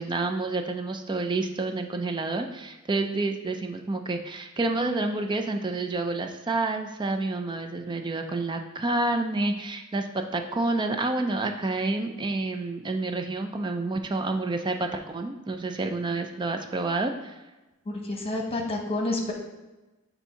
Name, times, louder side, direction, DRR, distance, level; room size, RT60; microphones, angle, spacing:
voice 1, 0.0-10.1 10.3-17.4, right 2 dB, 20° right, 6 dB, 0.4 m, -29 dB
voice 2, 17.9-19.3, left 2 dB, 25° left, 0 dB, 1.1 m, -29 dB
7.0 x 2.7 x 5.6 m, 1.1 s
head